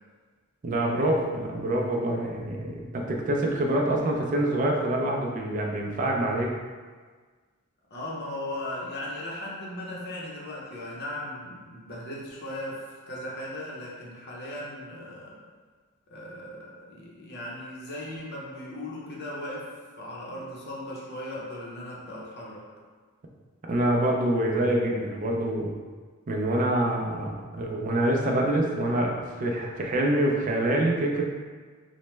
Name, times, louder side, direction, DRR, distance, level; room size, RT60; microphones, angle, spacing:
voice 1, 0.6-6.5 23.7-25.7 26.3-31.2, right 1 dB, 40° right, 0 dB, 0.4 m, -26 dB
voice 2, 7.9-15.4 16.1-22.7, left 1 dB, 50° left, -4 dB, 0.7 m, -37 dB
3.1 x 2.1 x 3.1 m, 1.5 s
head